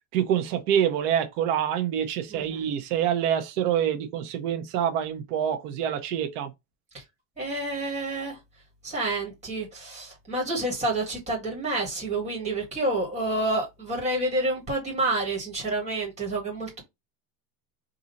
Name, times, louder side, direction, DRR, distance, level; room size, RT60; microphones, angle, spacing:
voice 1, 0.1-6.5, right 9 dB, 85° right, 1.1 m, -26 dB
voice 2, 2.3-2.7 6.9-7.0 7.4-8.4 8.8-16.8, right 2 dB, 15° right, 1.8 m, -29 dB
3.8 x 2.7 x 4.0 m
cardioid pair, 175°, 45 cm